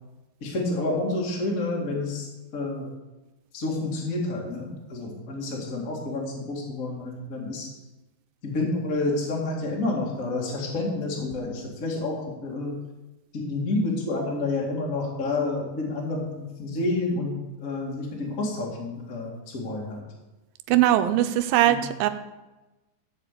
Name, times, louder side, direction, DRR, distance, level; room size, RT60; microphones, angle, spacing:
voice 1, 0.4-2.9 3.5-7.7 8.4-12.8 13.3-20.1 21.7-21.9, left 2 dB, 30° left, -2 dB, 2.0 m, -29 dB
voice 2, 20.7-22.1, right 13 dB, 85° right, 9 dB, 2.4 m, -20 dB
13.5 x 4.9 x 8.3 m, 1.1 s
omnidirectional pair, 4.1 m